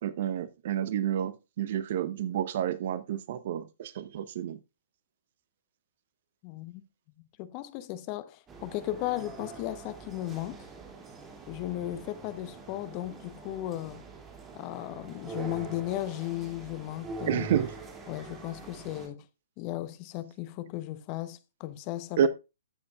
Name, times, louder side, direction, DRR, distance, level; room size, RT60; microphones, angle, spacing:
voice 1, 0.0-4.6 17.3-17.7 22.2-22.3, right 9 dB, 50° right, 0.8 m, -29 dB
voice 2, 6.4-6.8 7.4-10.6 11.5-14.0 14.5-17.5 18.1-19.2 19.6-22.3, left 15 dB, 35° left, 0.9 m, -36 dB
sound 1, 8.5-19.1, right 3 dB, 15° right, 2.5 m, -44 dB
13.5 x 7.7 x 2.4 m
figure-of-eight pair, 120°, 0 cm